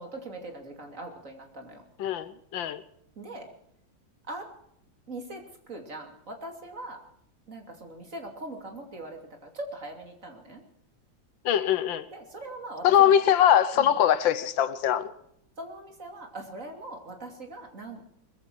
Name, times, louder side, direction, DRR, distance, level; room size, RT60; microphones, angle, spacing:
voice 1, 0.0-1.8 3.2-3.5 4.3-4.5 5.1-7.0 7.5-9.2 9.5-10.6 12.1-13.1 13.8-13.9 15.6-18.0, right 2 dB, 40° right, 3.1 m, -41 dB
voice 2, 2.0-2.8 11.4-12.1 12.8-15.1, left 10 dB, 80° left, 1.6 m, -22 dB
21.0 x 15.0 x 4.6 m
omnidirectional pair, 2.1 m